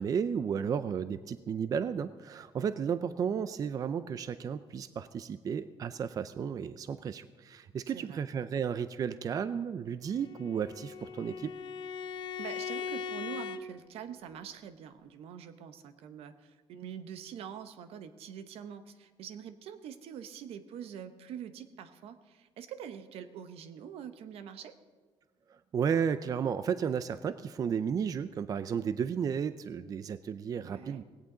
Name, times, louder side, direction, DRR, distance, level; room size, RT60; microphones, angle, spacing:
voice 1, 0.0-11.5 25.7-31.0, right 7 dB, 35° right, 13 dB, 0.4 m, -33 dB
voice 2, 7.9-8.2 12.4-24.8 30.6-31.0, right 8 dB, 75° right, 10 dB, 1.0 m, -45 dB
Bowed string instrument, 10.1-13.6, left 6 dB, 50° left, 0.7 m, -39 dB
18.0 x 17.0 x 3.9 m, 1.5 s
cardioid pair, 145°, 10 cm